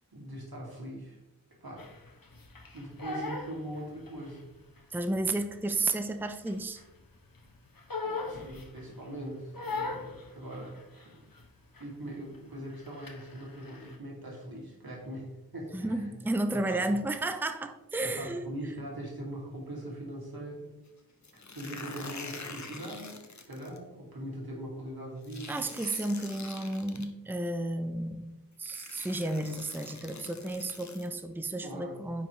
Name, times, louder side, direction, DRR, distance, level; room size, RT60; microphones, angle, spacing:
voice 1, 0.1-1.2 1.6-1.9 2.7-4.5 8.0-11.3 11.8-16.1 16.5-16.8 18.0-20.8 21.5-23.1 23.5-25.6 31.6-32.0, right 1 dB, 80° right, -3 dB, 2.6 m, -41 dB
Crying sobbing, 1.8-4.4 4.8-7.0 7.4-9.1 9.5-11.5 11.8-12.1 12.3-14.0, left 3 dB, 70° left, 1.2 m, -40 dB
voice 2, 4.9-6.8 15.7-18.4 25.5-28.3 28.6-32.3, right 2 dB, 5° right, 7 dB, 0.6 m, -32 dB
sound 1, 21.2-23.8 25.2-27.1 28.1-28.2 28.6-31.1, left 4 dB, 50° left, 1.0 m, -45 dB
9.4 x 5.6 x 3.2 m, 0.96 s
wide cardioid pair, 45°, 36 cm